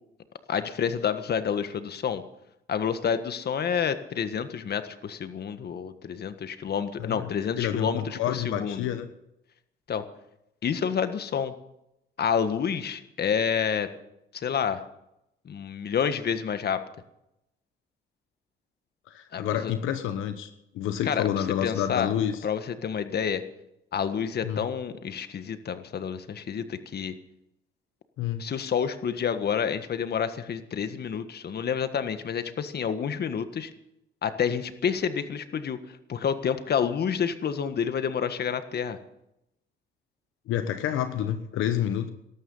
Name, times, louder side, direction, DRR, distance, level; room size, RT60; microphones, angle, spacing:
voice 1, 0.5-2.2 2.7-8.9 9.9-10.0 10.6-11.5 12.2-13.9 14.3-14.8 15.4-16.8 19.3-19.7 21.0-21.3 21.6-22.1 22.4-23.4 23.9-27.1 28.4-33.7 34.2-35.8 36.1-39.0, left 7 dB, 55° left, 10 dB, 1.6 m, -29 dB
voice 2, 7.0-7.3 7.6-9.1 19.1-22.4 24.4-24.7 28.2-28.4 40.5-42.1, left 10 dB, 90° left, 9 dB, 1.2 m, -29 dB
18.5 x 13.0 x 5.6 m, 0.83 s
cardioid pair, 90°, 20 cm